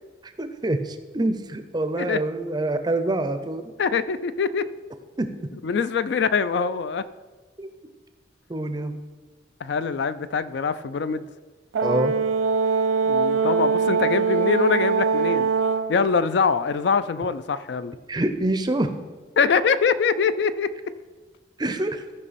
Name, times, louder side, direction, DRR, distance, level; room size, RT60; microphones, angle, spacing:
voice 1, 0.2-3.7 5.2-5.3 7.6-7.7 8.5-9.0 11.8-12.2 18.1-18.9 21.6-22.0, right 2 dB, 20° right, 9 dB, 0.5 m, -26 dB
voice 2, 3.8-4.7 5.6-7.1 9.6-11.2 13.0-15.5 15.9-18.0 19.4-20.7, left 5 dB, 60° left, 13 dB, 0.3 m, -23 dB
Brass instrument, 11.7-16.0, right 5 dB, 75° right, 0.4 m, -22 dB
14.0 x 5.3 x 4.1 m, 1.4 s
head